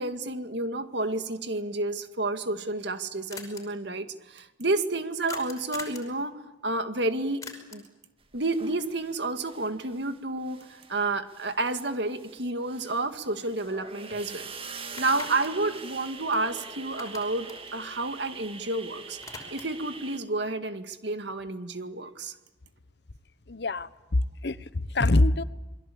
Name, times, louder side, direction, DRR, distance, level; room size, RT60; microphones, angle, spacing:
voice 1, 0.0-7.8 8.3-22.4, right 2 dB, 65° right, 8 dB, 2.1 m, -30 dB
sound 1, 3.3-3.6 5.3-6.1 7.4-7.9 12.1-12.2 12.6-13.8 14.1-14.2 14.8-16.6 16.9-18.7 19.0-19.8, left 4 dB, 20° left, 5.5 m, -44 dB
sound 2, 8.3-10.2 10.4-20.2, right 4 dB, 30° right, 2.1 m, -44 dB
voice 2, 23.5-25.4, left 2 dB, 60° left, 15 dB, 1.0 m, -25 dB
28.5 x 22.5 x 8.6 m, 1.1 s
head